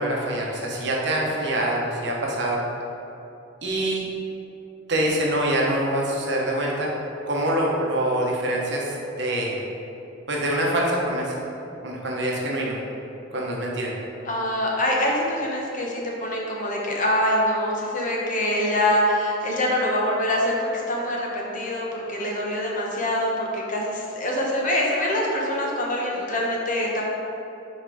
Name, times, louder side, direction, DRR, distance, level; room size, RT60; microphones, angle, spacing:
voice 1, 0.0-2.6 3.6-4.0 4.9-6.9 7.3-8.9 9.2-9.6 10.3-11.3 11.8-12.7 13.3-13.9, right 1 dB, 60° right, -2 dB, 1.1 m, -25 dB
voice 2, 14.2-27.0, left 1 dB, 40° left, -3 dB, 1.0 m, -24 dB
5.9 x 4.4 x 5.0 m, 2.9 s
head